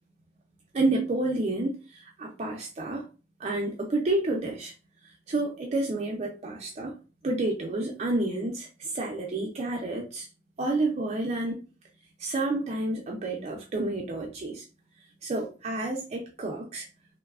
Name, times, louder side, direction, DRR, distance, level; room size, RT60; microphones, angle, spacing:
voice 1, 0.7-3.0 3.4-4.7 5.3-6.9 7.2-10.3 10.6-11.6 12.2-14.6 15.2-16.9, right 2 dB, 35° right, 0.4 m, -29 dB
3.0 x 2.0 x 2.3 m
head